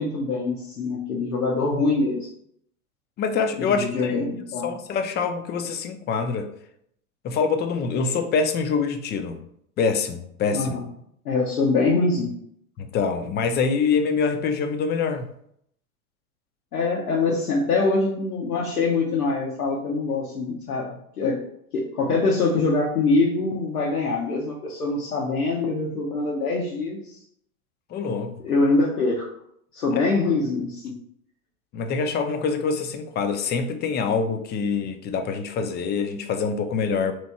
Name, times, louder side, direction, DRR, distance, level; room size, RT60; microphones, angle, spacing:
voice 1, 0.0-2.3 3.7-4.7 10.5-10.8 11.2-12.3 16.7-20.9 21.2-21.4 21.7-27.2 28.4-29.3 29.7-30.9, left 3 dB, 85° left, 1.0 m, -24 dB
voice 2, 3.2-4.1 4.6-6.5 7.2-9.4 9.8-10.7 12.8-15.3 27.9-28.3 29.9-30.0 31.7-37.1, left 5 dB, 25° left, 0.5 m, -25 dB
3.4 x 3.1 x 4.1 m
hypercardioid pair, 90°, 44 cm